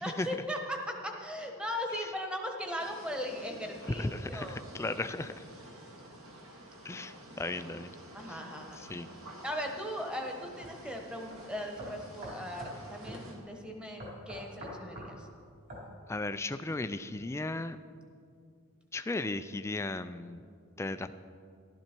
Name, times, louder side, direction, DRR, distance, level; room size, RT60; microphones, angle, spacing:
voice 1, 0.0-4.6 8.1-8.8 9.4-15.3, equal, 5° right, 3 dB, 1.2 m, -38 dB
sound 1, 2.8-13.4, right 1 dB, 65° right, 2.1 m, -51 dB
voice 2, 4.0-5.3 6.8-7.9 8.8-9.1 16.1-17.8 18.9-20.4 20.8-21.1, left 2 dB, 15° left, 11 dB, 0.3 m, -36 dB
sound 2, 10.6-10.7 11.3-11.4 11.8-12.8 13.1-13.2 14.0-15.1 15.7-15.9, equal, 45° right, 3.8 m, -43 dB
14.5 x 12.0 x 4.5 m, 2.3 s
head